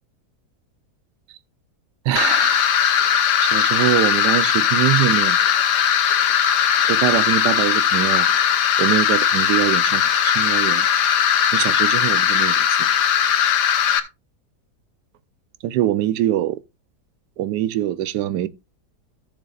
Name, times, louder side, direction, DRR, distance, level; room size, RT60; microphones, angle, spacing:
voice 1, 2.0-2.7 3.4-5.4 6.9-8.3 8.8-10.9 11.5-12.9 15.6-16.6 17.4-18.5, right 13 dB, 80° right, 1.2 m, -23 dB
sound 1, 2.2-14.0, left 8 dB, 75° left, 1.5 m, -18 dB
13.5 x 7.0 x 2.4 m
omnidirectional pair, 1.8 m